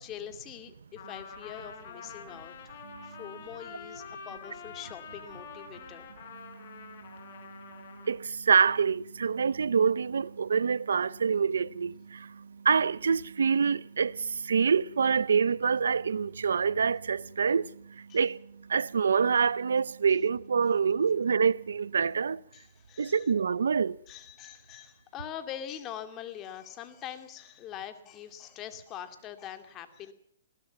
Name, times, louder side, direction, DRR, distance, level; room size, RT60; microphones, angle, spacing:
voice 1, 0.0-6.1 18.1-18.2 20.1-20.2 22.5-23.3 24.1-30.1, left 10 dB, 25° left, 2.4 m, -43 dB
Trumpet, 1.0-8.2, left 6 dB, 55° left, 6.6 m, -46 dB
voice 2, 6.4-22.4 23.0-24.0, right 6 dB, 85° right, 0.7 m, -27 dB
21.0 x 17.5 x 7.2 m
hypercardioid pair, 140°, 0 cm